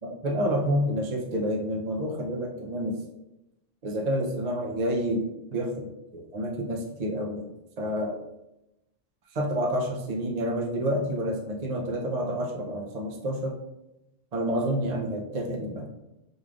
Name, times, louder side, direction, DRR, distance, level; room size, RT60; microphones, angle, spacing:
voice 1, 0.0-3.0 3.8-7.5 7.8-8.1 9.3-13.5 14.3-15.9, equal, 45° right, 0 dB, 0.6 m, -29 dB
5.2 x 3.2 x 2.4 m, 0.91 s
omnidirectional pair, 1.3 m